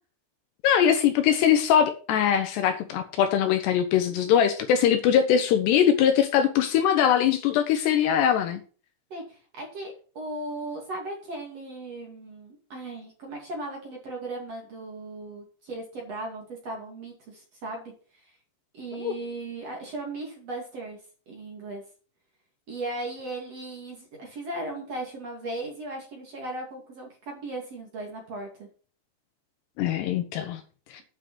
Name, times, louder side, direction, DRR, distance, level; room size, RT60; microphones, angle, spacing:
voice 1, 0.6-8.6 19.0-19.1 29.8-30.6, left 9 dB, 75° left, 7 dB, 2.8 m, -22 dB
voice 2, 9.1-18.3 18.7-21.0 21.3-21.8 22.7-28.7, right 2 dB, 40° right, 0 dB, 2.8 m, -37 dB
9.3 x 5.7 x 6.1 m, 0.38 s
omnidirectional pair, 5.4 m